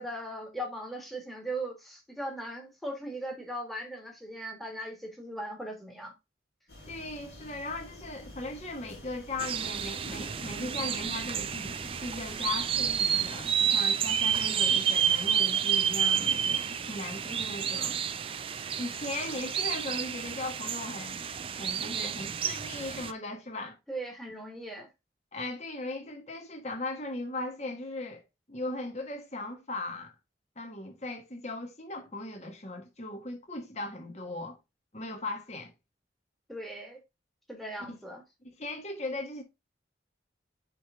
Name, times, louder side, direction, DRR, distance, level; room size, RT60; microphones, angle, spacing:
voice 1, 0.0-6.1 17.2-17.7 23.9-24.9 36.5-37.0 37.5-38.2, right 1 dB, ahead, 1.5 m, -39 dB
sound 1, 6.7-13.6, left 1 dB, 55° left, 2.4 m, -49 dB
voice 2, 6.9-18.0 18.8-21.3 21.6-23.8 25.3-28.2 28.5-30.1 30.6-34.6 34.9-35.7 37.9-38.0 38.4-39.4, left 2 dB, 35° left, 1.3 m, -38 dB
sound 2, 9.4-23.1, right 8 dB, 30° right, 0.3 m, -30 dB
8.4 x 3.3 x 3.6 m
head